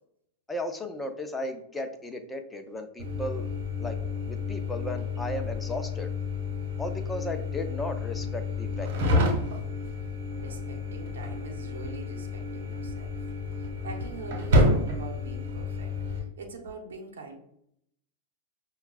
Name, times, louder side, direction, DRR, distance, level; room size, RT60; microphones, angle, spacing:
voice 1, 0.5-3.5 3.8-4.0 4.3-6.1 6.8-9.4, left 1 dB, 10° left, 5 dB, 0.6 m, -35 dB
sound 1, 3.0-16.2, left 2 dB, 65° right, 1.2 m, -30 dB
voice 2, 10.4-13.2 13.6-17.4, right 3 dB, 85° right, 4 dB, 0.8 m, -44 dB
5.8 x 2.3 x 2.3 m, 0.74 s
hypercardioid pair, 110°, 0 cm